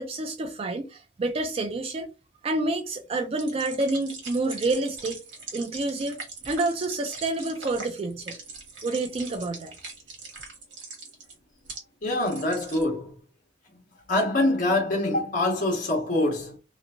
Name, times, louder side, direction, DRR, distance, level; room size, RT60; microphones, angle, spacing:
voice 1, 0.0-2.1 2.4-5.2 5.5-8.4 8.8-9.7, right 2 dB, 30° right, 0.3 m, -28 dB
sound 1, 3.4-11.8 12.1-12.9, right 4 dB, 70° right, 1.3 m, -41 dB
voice 2, 12.0-13.2 13.7-13.8 14.1-16.6, left 2 dB, 45° left, 1.3 m, -25 dB
2.9 x 2.6 x 2.4 m
head